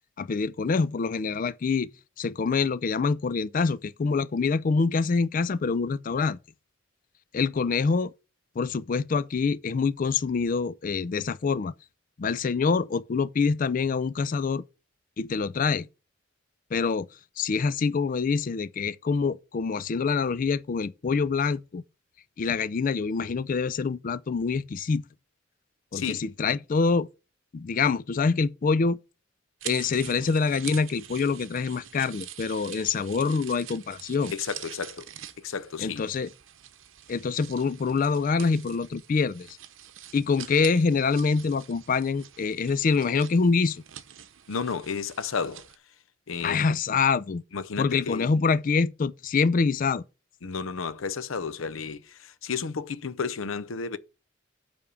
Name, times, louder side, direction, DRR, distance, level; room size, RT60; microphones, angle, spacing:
voice 1, 0.2-1.9 2.2-6.4 7.3-8.1 8.6-11.7 12.2-14.6 15.2-15.9 16.7-17.1 17.4-21.8 22.4-25.0 25.9-27.1 27.5-29.0 29.6-34.3 35.8-36.3 37.1-39.6 40.1-43.8 46.4-47.4 47.8-50.0, left 4 dB, 40° left, 0.4 m, -25 dB
voice 2, 25.9-26.2 34.3-35.1 35.4-36.0 44.5-45.7 46.3-46.6 47.5-48.3 50.4-54.0, left 5 dB, 90° left, 0.6 m, -32 dB
sound 1, 29.6-45.8, right 11 dB, 75° right, 0.8 m, -45 dB
8.6 x 3.5 x 6.8 m
head